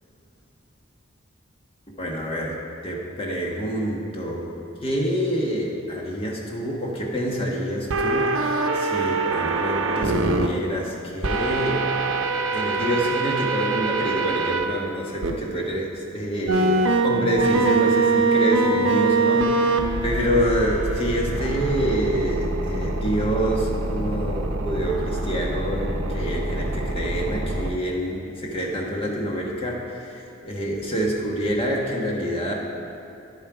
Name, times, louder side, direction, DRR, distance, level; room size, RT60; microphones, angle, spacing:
voice 1, 2.0-4.5 4.8-11.9 12.5-32.5, equal, 30° left, -2 dB, 1.3 m, -27 dB
sound 1, 7.9-10.5 11.2-14.6 15.2-15.3 16.5-27.7, right 3 dB, 80° right, 0.7 m, -24 dB
10.0 x 7.2 x 4.9 m, 2.8 s
head